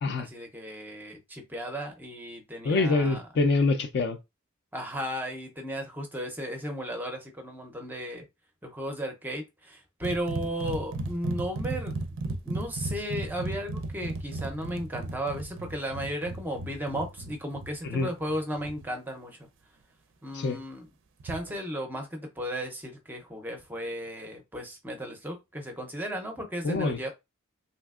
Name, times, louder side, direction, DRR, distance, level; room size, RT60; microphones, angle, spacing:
voice 1, 0.2-3.2 4.7-8.2 8.6-11.9 12.4-19.5 20.2-20.9 21.2-27.1, equal, 10° right, 0.5 m, -35 dB
voice 2, 2.6-4.2 17.8-18.1 20.3-20.6 26.6-27.0, left 3 dB, 50° left, 0.4 m, -25 dB
sound 1, 10.0-18.8 21.2-21.6, right 2 dB, 60° right, 0.4 m, -36 dB
3.2 x 2.7 x 2.3 m
head